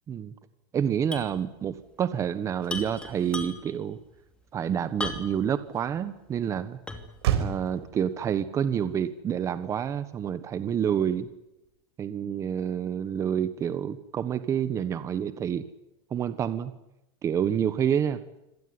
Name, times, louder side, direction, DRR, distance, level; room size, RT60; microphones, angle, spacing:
voice 1, 0.7-4.0 4.5-6.8 7.4-11.3 12.0-15.6 16.1-16.7 17.2-18.2, right 8 dB, 25° right, 13 dB, 1.3 m, -28 dB
sound 1, 1.1-1.4 1.6-1.7 2.6-3.8 5.0-5.5 6.0-6.1 6.9-7.2, left 2 dB, 5° left, 2.7 m, -36 dB
Motor vehicle (road), 4.0-11.8, right 10 dB, 85° right, 4.7 m, -37 dB
26.0 x 18.0 x 9.7 m, 0.89 s
supercardioid pair, 155°, 13 cm